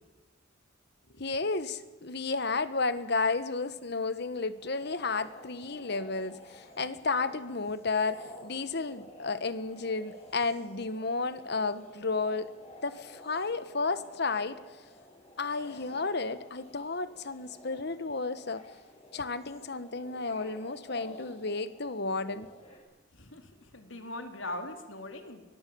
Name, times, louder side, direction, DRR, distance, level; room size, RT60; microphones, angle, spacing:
voice 1, 1.1-12.5 12.8-14.6 15.4-18.6 19.1-22.5, left 3 dB, 55° left, 13 dB, 1.4 m, -32 dB
sound 1, 4.6-22.8, left 1 dB, 30° left, 6.9 m, -52 dB
voice 2, 23.1-25.4, left 2 dB, 80° left, 6 dB, 3.2 m, -41 dB
24.0 x 19.0 x 8.6 m, 1.2 s
head